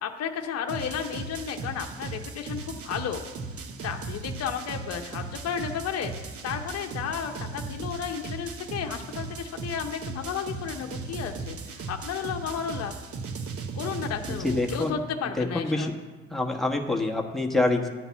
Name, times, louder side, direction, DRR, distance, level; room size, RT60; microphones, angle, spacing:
voice 1, 0.0-3.2 3.8-12.9 13.7-15.9, left 7 dB, 45° left, 4 dB, 0.8 m, -33 dB
sound 1, 0.7-14.9, right 4 dB, 40° right, 0.9 m, -37 dB
voice 2, 14.3-15.0 15.4-15.9 16.3-17.9, left 2 dB, ahead, 1 dB, 1.2 m, -26 dB
10.5 x 4.0 x 7.1 m, 1.3 s
hypercardioid pair, 55°, 36 cm